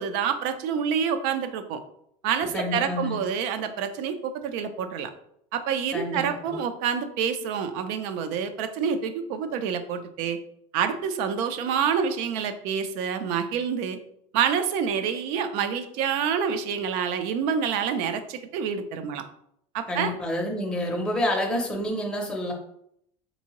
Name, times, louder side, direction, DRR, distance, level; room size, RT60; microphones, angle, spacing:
voice 1, 0.0-1.8 2.2-5.1 5.5-10.4 10.7-14.0 14.3-19.2 19.7-20.1, right 7 dB, 60° right, 10 dB, 0.4 m, -27 dB
voice 2, 2.5-3.1 5.9-6.6 19.9-22.5, left 1 dB, 5° left, -1 dB, 0.5 m, -28 dB
3.5 x 2.7 x 2.9 m, 0.72 s
cardioid pair, 160°, 16 cm